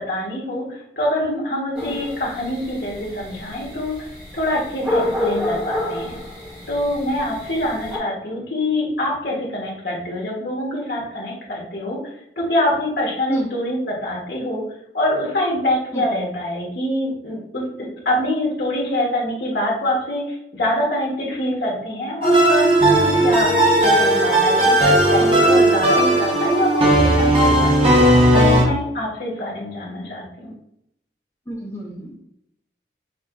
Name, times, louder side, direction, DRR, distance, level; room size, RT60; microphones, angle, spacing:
voice 1, 0.1-3.9 4.3-6.2 6.7-12.0 12.4-14.6 14.9-23.5 23.8-27.9 28.3-30.5, left 1 dB, 65° left, -3 dB, 1.5 m, -24 dB
sound 1, 1.7-8.0, left 1 dB, 5° right, 1.7 m, -29 dB
sound 2, 22.2-28.6, right 1 dB, 30° right, 1.0 m, -16 dB
voice 2, 31.5-32.2, right 1 dB, 15° left, -3 dB, 0.7 m, -28 dB
6.5 x 2.9 x 2.6 m, 0.78 s
head